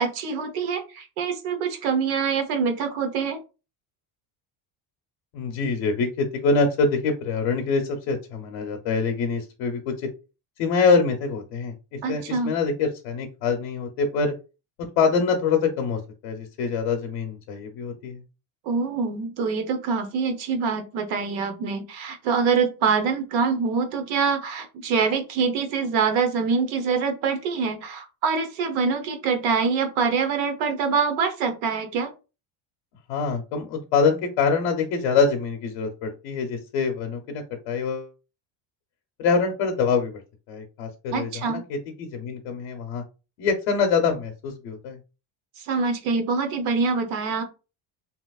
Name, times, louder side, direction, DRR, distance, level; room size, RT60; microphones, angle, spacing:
voice 1, 0.0-3.4 12.0-12.6 18.7-32.1 41.1-41.6 45.6-47.4, right 5 dB, 90° right, 7 dB, 0.9 m, -25 dB
voice 2, 5.3-10.1 10.6-14.3 15.0-18.2 33.1-38.1 39.2-40.2 40.5-43.0 43.4-45.0, left 4 dB, 70° left, 2 dB, 0.7 m, -25 dB
2.9 x 2.9 x 2.3 m, 0.31 s
cardioid pair, 140°, 45 cm